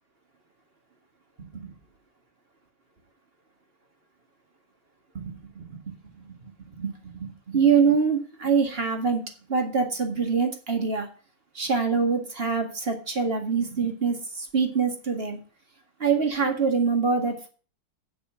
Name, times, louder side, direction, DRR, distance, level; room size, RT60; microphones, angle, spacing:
voice 1, 1.4-1.7 5.1-5.8 6.1-6.9 7.2-9.2 9.5-11.1 11.6-15.4 16.0-17.5, right 5 dB, 30° right, 4 dB, 1.9 m, -25 dB
8.8 x 6.3 x 7.2 m, 0.38 s
omnidirectional pair, 2.3 m